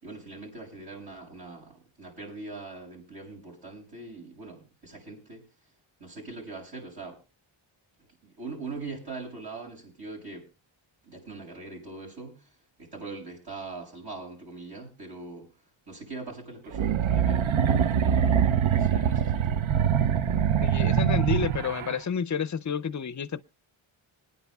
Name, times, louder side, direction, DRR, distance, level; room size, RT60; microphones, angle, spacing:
voice 1, 0.0-5.4 6.0-7.2 8.2-10.5 11.0-12.4 12.8-15.5 15.9-19.7, right 3 dB, 50° right, 6.8 m, -42 dB
sound 1, 16.7-22.0, right 8 dB, 70° right, 0.7 m, -24 dB
voice 2, 20.6-23.4, left 7 dB, 35° left, 0.5 m, -30 dB
25.5 x 9.9 x 2.3 m
wide cardioid pair, 125°, 50 cm